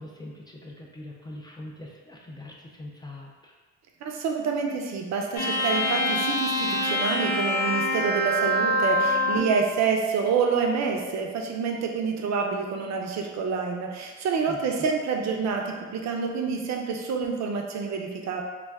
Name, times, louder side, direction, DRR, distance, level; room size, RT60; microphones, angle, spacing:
voice 1, 0.0-3.5 14.5-14.6, left 1 dB, 15° left, -2 dB, 0.3 m, -42 dB
voice 2, 4.0-18.4, right 5 dB, 65° right, 2 dB, 0.5 m, -27 dB
sound 1, 5.4-9.6, equal, 70° left, 0.7 m, -25 dB
2.3 x 2.3 x 3.4 m, 1.4 s
cardioid pair, 90°, 30 cm